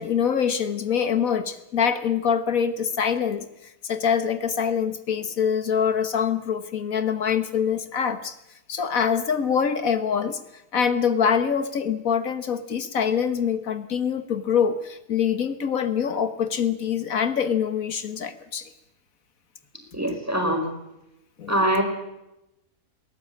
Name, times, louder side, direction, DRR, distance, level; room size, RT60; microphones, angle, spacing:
voice 1, 0.0-8.4 8.7-10.4 10.7-18.7 21.4-21.5, left 7 dB, 75° left, 11 dB, 1.7 m, -24 dB
voice 2, 19.9-20.7 21.5-21.8, equal, 10° right, 3 dB, 5.0 m, -23 dB
21.5 x 18.0 x 8.6 m, 0.89 s
omnidirectional pair, 1.5 m